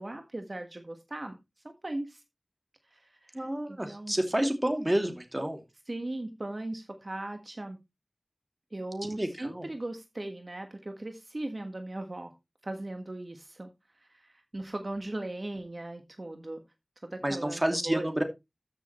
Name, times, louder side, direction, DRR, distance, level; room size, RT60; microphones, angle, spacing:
voice 1, 0.0-1.4 1.6-2.2 2.9-4.1 5.9-7.8 8.7-12.3 12.6-13.7 14.0-16.6 17.0-18.2, right 1 dB, 60° right, 5 dB, 1.5 m, -38 dB
voice 2, 3.3-5.6 9.1-9.7 17.2-18.2, right 1 dB, 25° right, 5 dB, 2.6 m, -29 dB
14.0 x 6.8 x 3.1 m, 0.23 s
wide cardioid pair, 45°, 0 cm